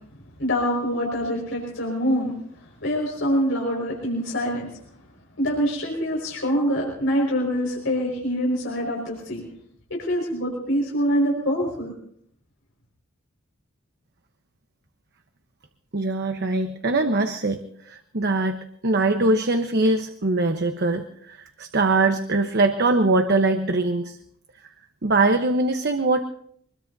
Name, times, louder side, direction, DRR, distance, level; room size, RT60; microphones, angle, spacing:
voice 1, 0.4-2.3 2.8-4.7 5.4-9.4 9.9-11.9, equal, 65° left, -2 dB, 5.2 m, -25 dB
voice 2, 15.9-17.6 17.9-18.6 18.8-21.0 21.6-24.2 25.0-26.2, right 2 dB, 55° right, 6 dB, 1.0 m, -22 dB
25.0 x 21.0 x 2.7 m, 0.66 s
head